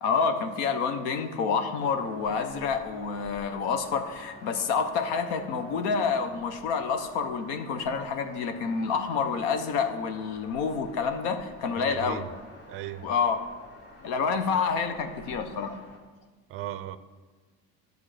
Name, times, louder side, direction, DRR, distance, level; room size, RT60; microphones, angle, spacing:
voice 1, 0.0-12.2 13.0-13.4 14.0-15.8, left 5 dB, 90° left, 8 dB, 1.0 m, -28 dB
sound 1, 1.8-16.0, left 1 dB, 25° left, 1.8 m, -50 dB
voice 2, 11.7-12.3 12.7-13.1 16.5-17.0, right 12 dB, 35° right, 14 dB, 0.4 m, -37 dB
9.8 x 6.7 x 5.0 m, 1.4 s
cardioid pair, 145°, 39 cm